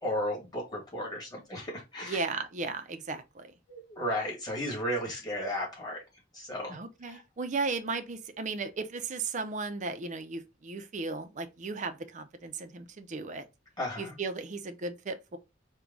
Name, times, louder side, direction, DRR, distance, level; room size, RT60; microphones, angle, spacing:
voice 1, 0.0-2.2 3.7-6.0 6.3-6.8 7.1-7.2 13.8-14.1, equal, 20° left, 1.9 m, -34 dB
voice 2, 2.0-3.5 6.7-13.5 14.0-15.4, right 3 dB, 40° right, 0.5 m, -35 dB
4.6 x 2.2 x 3.9 m
head